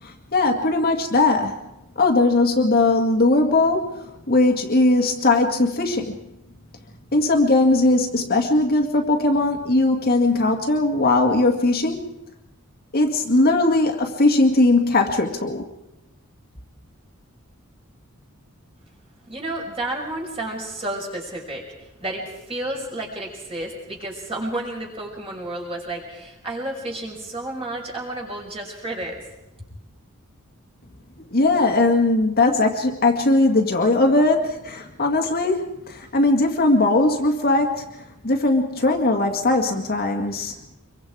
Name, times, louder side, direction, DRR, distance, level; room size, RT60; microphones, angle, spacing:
voice 1, 0.0-1.6 2.0-6.2 7.1-12.1 12.9-15.6 31.3-37.9 38.2-40.6, left 2 dB, 45° left, 3 dB, 2.0 m, -19 dB
voice 2, 19.3-29.2, right 1 dB, 25° right, -2 dB, 5.7 m, -31 dB
25.5 x 23.5 x 4.8 m, 0.90 s
head